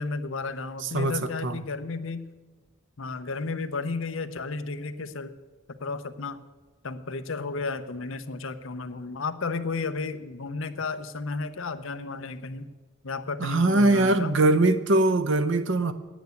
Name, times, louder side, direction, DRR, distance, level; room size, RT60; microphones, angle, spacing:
voice 1, 0.0-2.2 3.0-5.4 5.8-6.4 6.8-12.7 13.0-14.3, left 3 dB, 70° left, 11 dB, 0.7 m, -33 dB
voice 2, 0.8-1.6 13.4-15.9, right 2 dB, 60° right, 11 dB, 0.8 m, -22 dB
9.3 x 9.3 x 8.2 m, 1.3 s
head